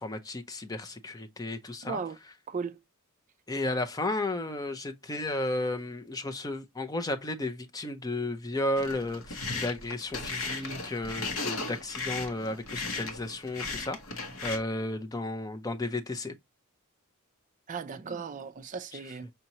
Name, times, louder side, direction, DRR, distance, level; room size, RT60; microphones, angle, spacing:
voice 1, 0.0-2.0 3.5-16.3, left 2 dB, 15° left, 0.5 m, -33 dB
voice 2, 1.8-2.2 2.5-2.8 17.7-19.3, right 5 dB, 35° right, 0.4 m, -36 dB
sound 1, 8.8-14.6, left 3 dB, 65° left, 1.1 m, -36 dB
5.4 x 2.9 x 2.8 m
head